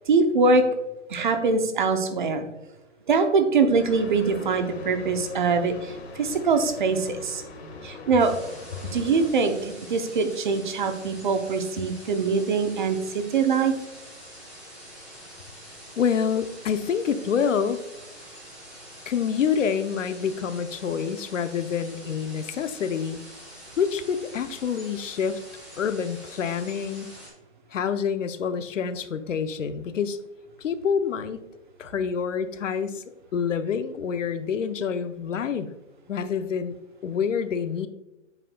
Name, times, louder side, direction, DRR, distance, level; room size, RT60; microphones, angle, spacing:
voice 1, 0.1-0.6 1.1-2.5 3.1-7.4 7.8-8.3 8.9-13.7, right 4 dB, 40° right, 7 dB, 0.7 m, -23 dB
sound 1, 3.8-9.3, left 2 dB, 60° left, 1.6 m, -40 dB
sound 2, 8.2-27.3, equal, ahead, 1.0 m, -45 dB
voice 2, 16.0-17.8 19.1-23.3 23.8-25.4 25.8-27.1 27.7-30.2 30.6-31.4 31.8-33.0 33.3-35.7 36.1-36.7 37.0-37.9, left 7 dB, 80° left, 11 dB, 0.7 m, -27 dB
8.0 x 5.6 x 2.3 m, 0.98 s
hypercardioid pair, 160°, 37 cm